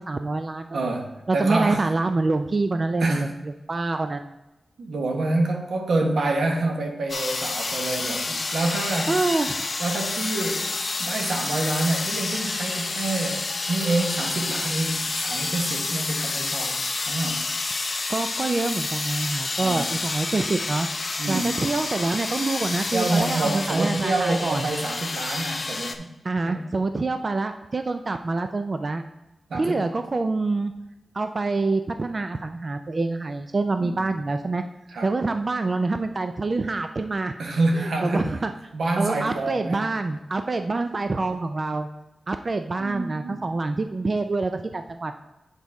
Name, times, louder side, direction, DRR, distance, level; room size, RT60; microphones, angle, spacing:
voice 1, 0.0-0.8 1.3-3.3 3.7-4.2 9.1-9.6 18.1-20.9 21.3-24.7 26.2-29.0 29.5-30.7 31.1-34.6 35.0-37.3 37.8-38.5 39.0-41.9 42.3-45.2, right 3 dB, 35° right, 8 dB, 0.3 m, -26 dB
voice 2, 0.7-1.8 3.0-3.3 4.8-9.2 9.8-16.8 17.1-17.4 19.6-19.9 21.2-21.5 22.9-26.1 26.4-26.7 29.5-29.9 33.8-34.0 34.9-35.1 37.4-38.3 38.7-39.9 42.8-43.4, right 2 dB, 85° right, 1 dB, 1.3 m, -27 dB
sound 1, 7.1-25.9, left 3 dB, 40° left, 0.6 m, -29 dB
8.2 x 4.0 x 4.8 m, 0.98 s
wide cardioid pair, 125°, 0 cm